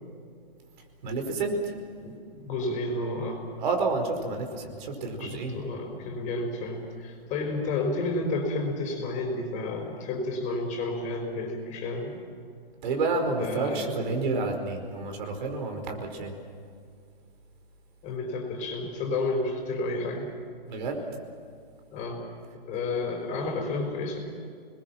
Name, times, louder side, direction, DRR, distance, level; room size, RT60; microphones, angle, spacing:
voice 1, 1.0-1.5 3.6-5.6 12.8-16.4 20.7-21.0, right 3 dB, 50° right, 4 dB, 4.9 m, -29 dB
voice 2, 2.4-3.4 5.2-12.1 13.4-13.9 18.0-20.3 21.9-22.2 22.7-24.2, left 2 dB, 25° left, 3 dB, 5.3 m, -31 dB
29.5 x 21.5 x 6.1 m, 2.3 s
hypercardioid pair, 155°, 30 cm